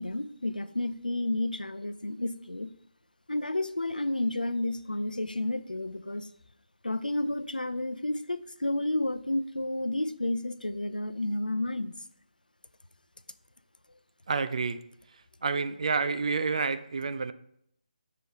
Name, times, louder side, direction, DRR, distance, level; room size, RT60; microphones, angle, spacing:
voice 1, 0.0-2.7 3.3-6.3 6.8-11.9, left 2 dB, 85° left, 13 dB, 0.6 m, -31 dB
voice 2, 14.3-14.8 15.4-17.3, right 4 dB, 50° right, 12 dB, 0.5 m, -29 dB
7.0 x 6.2 x 4.5 m, 0.72 s
figure-of-eight pair, 150°, 4 cm